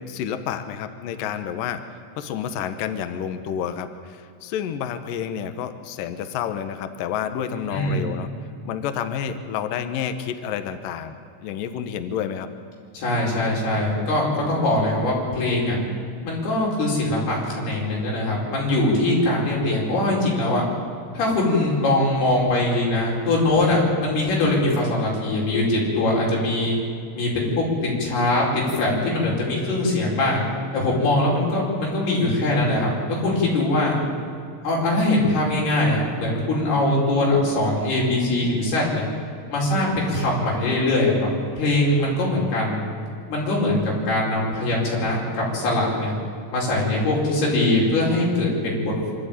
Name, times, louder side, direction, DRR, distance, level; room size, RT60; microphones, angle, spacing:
voice 1, 0.0-1.8 2.2-8.3 8.6-12.5, left 8 dB, 85° left, 9 dB, 2.0 m, -29 dB
voice 2, 7.7-8.0 12.9-15.8 16.2-20.6 21.1-26.8 27.1-30.4 30.7-34.0 34.6-39.1 39.5-41.1 41.6-42.8 43.3-46.1 46.5-49.1, left 2 dB, 55° left, -3 dB, 6.6 m, -22 dB
25.0 x 13.0 x 9.1 m, 2.3 s
omnidirectional pair, 5.4 m